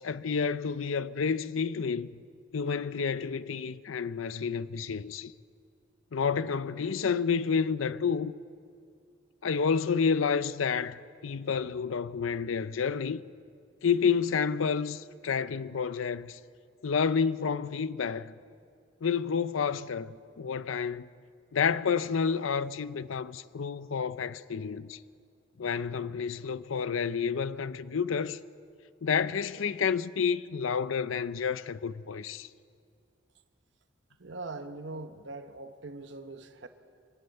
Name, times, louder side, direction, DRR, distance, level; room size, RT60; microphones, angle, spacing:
voice 1, 0.0-2.2 2.5-5.3 6.1-8.3 9.4-13.2 13.8-16.4 16.8-18.3 19.0-21.1 21.5-25.0 25.6-28.4 29.0-32.5, left 6 dB, 90° left, 0.5 m, -30 dB
voice 2, 34.2-36.7, right 3 dB, 65° right, 1.1 m, -41 dB
24.5 x 12.5 x 9.0 m
head